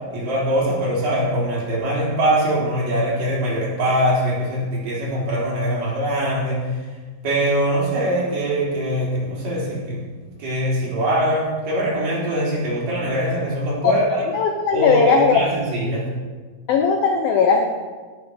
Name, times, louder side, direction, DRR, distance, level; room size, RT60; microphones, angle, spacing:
voice 1, 0.1-6.6 7.2-10.0 10.4-14.2 14.7-16.1, right 1 dB, 45° right, -6 dB, 5.1 m, -22 dB
voice 2, 13.8-15.3 16.7-17.6, left 5 dB, 85° left, 3 dB, 2.0 m, -18 dB
17.5 x 6.8 x 6.8 m, 1.5 s
omnidirectional pair, 5.6 m